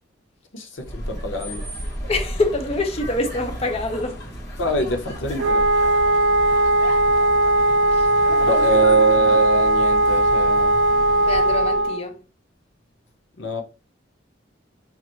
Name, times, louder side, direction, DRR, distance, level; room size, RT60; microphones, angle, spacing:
voice 1, 0.5-1.6 4.6-5.6 8.4-10.8 13.4-13.6, right 2 dB, 85° left, 0.9 m, -23 dB
sound 1, 0.8-11.9, equal, 60° left, 1.5 m, -34 dB
voice 2, 2.1-4.2 7.9-8.1 11.2-12.2, left 2 dB, 30° left, 0.6 m, -25 dB
Wind instrument woodwind instrument, 5.4-12.0, right 1 dB, 75° right, 0.4 m, -18 dB
5.6 x 2.5 x 3.1 m
head